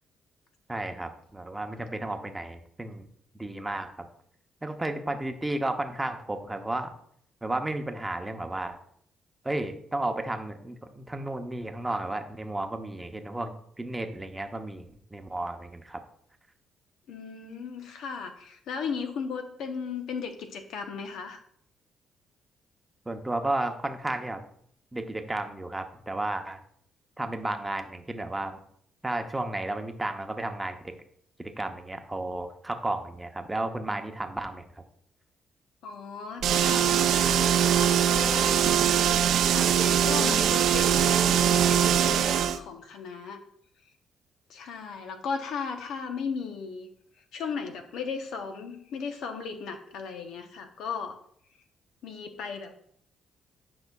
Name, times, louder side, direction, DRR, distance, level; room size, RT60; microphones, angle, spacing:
voice 1, 0.7-3.1 3.3-4.1 4.6-6.9 7.4-8.8 9.4-16.0 23.1-24.4 24.9-26.6 27.2-28.6 29.0-30.9 31.4-34.6, right 2 dB, 15° right, 5 dB, 0.8 m, -33 dB
voice 2, 17.1-21.4 35.8-38.6 39.5-43.4 44.5-46.9 47.3-51.2 52.0-52.7, left 5 dB, 80° left, 6 dB, 0.9 m, -36 dB
sound 1, 36.4-42.6, right 9 dB, 75° right, 0.5 m, -22 dB
10.5 x 5.5 x 2.3 m, 0.65 s
cardioid pair, 90°, 0 cm